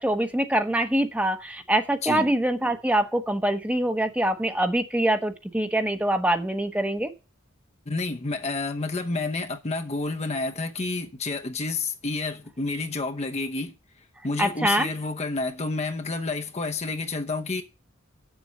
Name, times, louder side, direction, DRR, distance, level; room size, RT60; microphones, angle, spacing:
voice 1, 0.0-7.1 14.4-14.9, right 1 dB, 5° right, 0.9 m, -24 dB
voice 2, 7.9-13.8 14.2-17.6, left 3 dB, 35° left, 0.8 m, -29 dB
7.7 x 7.2 x 7.2 m
head